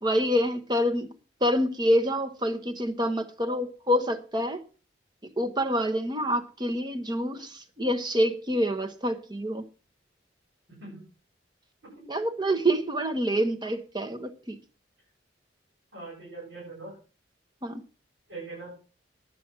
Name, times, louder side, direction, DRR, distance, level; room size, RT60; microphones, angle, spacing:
voice 1, 0.0-1.1 1.4-4.6 5.4-9.6 12.1-14.6 17.6-17.8, equal, 25° right, 1.1 m, -27 dB
voice 2, 10.7-11.0 11.8-12.0 15.9-17.0 18.3-18.7, right 3 dB, 80° right, 7.8 m, -42 dB
10.5 x 9.0 x 6.1 m
head